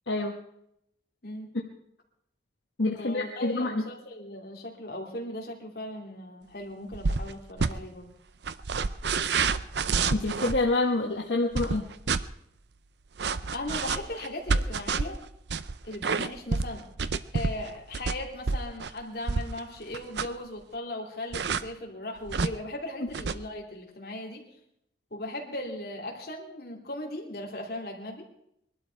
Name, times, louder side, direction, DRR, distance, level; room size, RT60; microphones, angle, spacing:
voice 1, 0.1-0.4 2.8-3.8 10.1-11.9, left 2 dB, 75° left, 1 dB, 1.3 m, -27 dB
voice 2, 1.2-1.5 3.0-8.1 13.5-15.2 15.8-16.8 17.3-24.4 25.1-28.2, left 1 dB, 55° left, 1 dB, 2.8 m, -38 dB
footsteps rug, 6.9-7.3 7.6-7.7 8.4-10.6 11.5-12.2 13.2-19.6 19.9-20.4 21.3-21.6 22.3-22.5 23.1-23.4, right 4 dB, 70° right, 0.6 m, -28 dB
21.5 x 12.0 x 4.6 m, 0.75 s
head